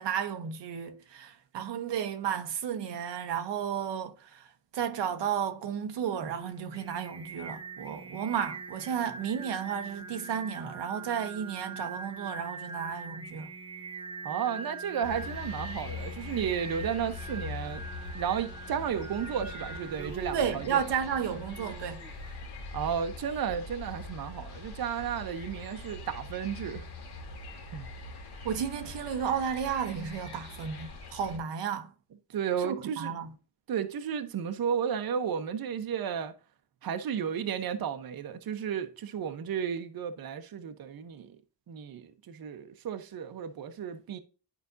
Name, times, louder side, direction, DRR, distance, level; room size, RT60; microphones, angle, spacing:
voice 1, 0.0-4.5 4.7-13.5 20.3-22.0 28.4-31.9 32.6-33.3, right 8 dB, 90° right, 1.0 m, -33 dB
Singing, 6.2-22.5, right 4 dB, 15° right, 0.6 m, -43 dB
voice 2, 14.2-17.8 18.1-20.8 22.7-26.8 27.7-27.9 32.3-33.1 33.7-36.3 36.8-41.4 41.7-44.2, right 8 dB, 60° right, 0.9 m, -33 dB
sound 1, 15.0-31.4, left 3 dB, 65° left, 2.0 m, -42 dB
10.5 x 5.0 x 2.6 m
wide cardioid pair, 140°, 41 cm